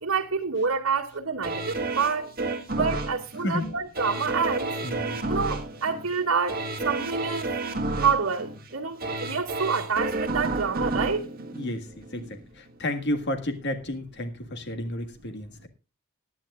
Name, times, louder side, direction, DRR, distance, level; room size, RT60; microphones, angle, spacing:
voice 1, 0.0-2.3 2.7-4.7 5.3-7.5 8.0-11.3, right 5 dB, 75° right, 1.9 m, -27 dB
sound 1, 1.4-12.4 12.8-12.9, right 2 dB, 45° right, 1.6 m, -31 dB
voice 2, 3.4-3.8 4.8-5.2 11.5-15.7, left 1 dB, 55° left, 1.8 m, -32 dB
19.0 x 10.5 x 2.4 m
head